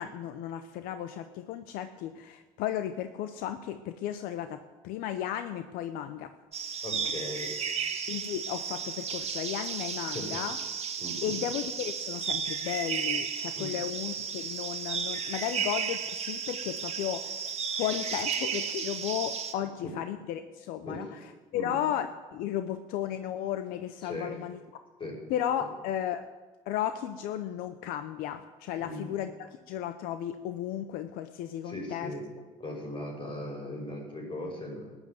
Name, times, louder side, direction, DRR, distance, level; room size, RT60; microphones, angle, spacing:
voice 1, 0.0-4.6 4.8-6.3 8.1-10.6 11.2-21.1 21.5-24.6 25.3-26.2 26.7-32.1, left 10 dB, 85° left, 10 dB, 0.7 m, -34 dB
sound 1, 6.5-19.5, right 6 dB, 45° right, 1.7 m, -34 dB
voice 2, 6.8-7.5 10.0-10.3 11.0-11.3 13.6-13.7 19.8-19.9 20.8-21.1 21.5-21.8 24.0-24.3 25.0-25.2 25.6-25.7 28.8-29.1 31.6-32.2 32.6-35.0, left 1 dB, 35° left, 1 dB, 6.1 m, -38 dB
14.0 x 9.9 x 7.9 m, 1.3 s
supercardioid pair, 80°, 15 cm